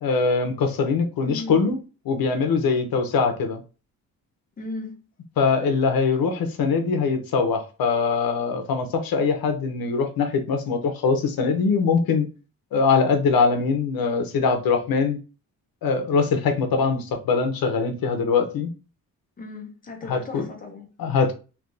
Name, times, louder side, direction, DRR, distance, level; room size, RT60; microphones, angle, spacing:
voice 1, 0.0-1.8 2.1-3.6 5.4-12.3 12.7-15.2 15.8-18.7 20.1-20.4 21.0-21.3, left 5 dB, 80° left, 0.7 m, -22 dB
voice 2, 1.2-1.7 4.6-5.0 19.4-20.9, left 2 dB, 25° left, 0.7 m, -36 dB
3.3 x 2.7 x 2.6 m
wide cardioid pair, 175°, 35 cm